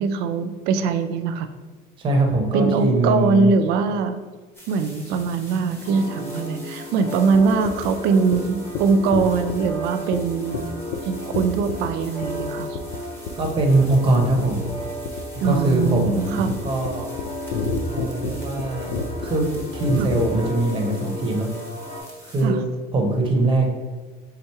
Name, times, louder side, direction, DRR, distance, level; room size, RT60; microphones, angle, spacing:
voice 1, 0.0-1.5 2.5-4.2 4.7-10.7 11.1-12.8 15.4-16.6 20.0-20.1 22.4-22.6, right 5 dB, 60° right, 9 dB, 0.4 m, -22 dB
voice 2, 2.0-3.5 13.4-14.6 15.4-17.1 17.9-19.5 19.7-21.5 22.2-22.7 22.9-23.7, right 2 dB, 25° right, 2 dB, 0.7 m, -22 dB
sound 1, 4.5-22.4, equal, 10° left, 1.0 m, -46 dB
sound 2, 5.8-22.0, left 1 dB, 40° left, 1.0 m, -34 dB
sound 3, 7.3-7.4 7.7-7.9 8.3-8.4 8.7-8.8 9.1-9.7 10.1-10.2 10.5-10.6 10.9-11.0 11.3-11.9 12.2-12.5 12.8-13.0 13.3-13.5 13.8-14.0 14.2-20.3, left 4 dB, 60° left, 0.5 m, -29 dB
3.6 x 2.9 x 4.5 m, 1.4 s
cardioid pair, 155°, 19 cm